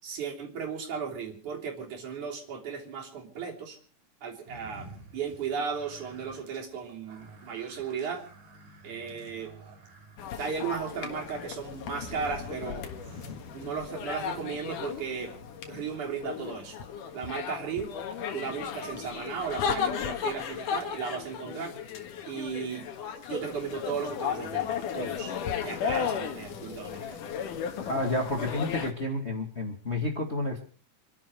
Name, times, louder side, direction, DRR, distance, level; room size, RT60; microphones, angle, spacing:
voice 1, 0.0-3.8 4.2-8.2 8.8-9.5 10.4-12.8 13.5-15.3 15.7-16.8 17.1-17.9 18.3-22.0 22.3-22.9 23.3-25.3 25.6-27.2, right 6 dB, 65° right, 0 dB, 4.7 m, -35 dB
sound 1, 4.4-14.1, right 2 dB, 90° right, 4.6 m, -51 dB
sound 2, 10.2-28.9, left 7 dB, 80° left, 3.1 m, -35 dB
voice 2, 27.8-30.6, left 1 dB, 25° left, 3 dB, 1.9 m, -30 dB
26.5 x 11.5 x 4.6 m, 0.41 s
omnidirectional pair, 3.7 m